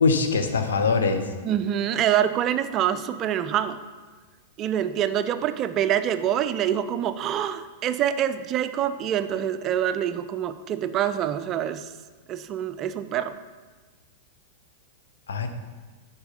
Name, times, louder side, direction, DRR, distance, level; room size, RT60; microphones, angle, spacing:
voice 1, 0.0-1.3 15.3-15.5, left 4 dB, 75° left, 7 dB, 0.7 m, -22 dB
voice 2, 1.4-3.8 4.6-11.9 12.3-13.3, right 10 dB, 35° right, 12 dB, 0.4 m, -25 dB
6.8 x 5.4 x 3.9 m, 1.4 s
figure-of-eight pair, 100°, 0 cm